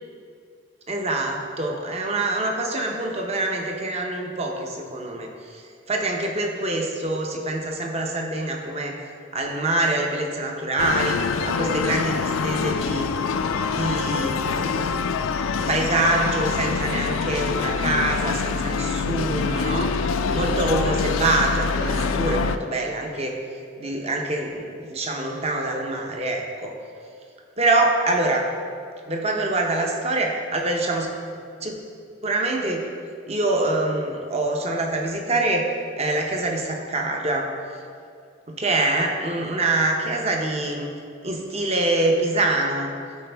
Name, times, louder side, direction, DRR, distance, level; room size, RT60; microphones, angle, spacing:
voice 1, 0.9-9.0 9.3-11.2 11.4-13.1 13.7-15.0 15.7-20.0 20.3-23.4 23.8-26.7 27.6-28.5 29.1-31.1 31.6-31.8 32.2-32.8 33.3-37.5 38.5-40.9 41.2-42.9, right 2 dB, 30° right, 1 dB, 0.8 m, -25 dB
sound 1, 10.8-22.6, left 5 dB, 90° left, 0.4 m, -25 dB
11.5 x 4.3 x 3.4 m, 2.3 s
head